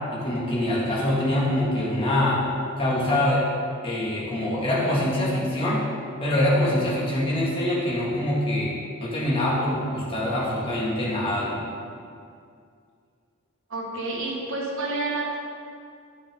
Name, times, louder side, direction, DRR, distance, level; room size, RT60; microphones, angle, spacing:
voice 1, 0.1-2.4 2.8-3.4 3.8-5.8 6.2-8.7 9.0-11.6, left 1 dB, 25° left, -7 dB, 2.1 m, -24 dB
voice 2, 13.7-15.4, right 2 dB, 60° right, -2 dB, 1.7 m, -29 dB
9.2 x 8.5 x 3.7 m, 2.3 s
head